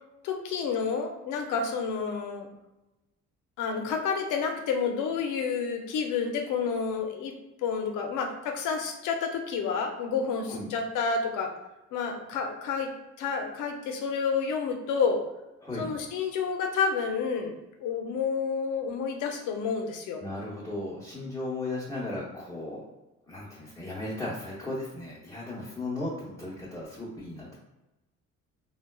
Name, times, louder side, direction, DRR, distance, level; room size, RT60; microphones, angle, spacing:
voice 1, 0.2-2.5 3.6-7.3 7.6-11.5 11.9-12.9 13.2-15.2 15.8-17.6 17.8-20.2, left 5 dB, 85° left, 4 dB, 0.6 m, -29 dB
voice 2, 15.6-15.9 20.2-22.8 23.3-27.6, left 2 dB, 10° left, -9 dB, 0.8 m, -36 dB
3.6 x 2.2 x 2.2 m, 0.99 s
cardioid pair, 90°, 30 cm